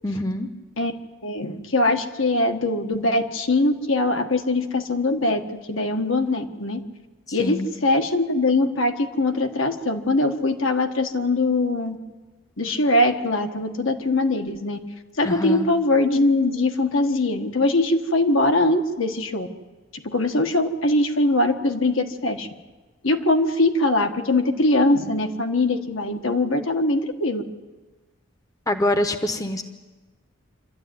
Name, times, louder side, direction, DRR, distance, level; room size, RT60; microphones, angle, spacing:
voice 1, 0.0-0.5 7.3-7.7 15.2-15.7 28.7-29.6, left 1 dB, 15° left, 8 dB, 0.9 m, -25 dB
voice 2, 1.2-6.8 7.3-12.0 12.6-14.8 15.2-19.5 19.9-22.5 23.0-27.4, left 2 dB, 70° left, 5 dB, 1.5 m, -22 dB
26.0 x 13.0 x 9.5 m, 1.3 s
head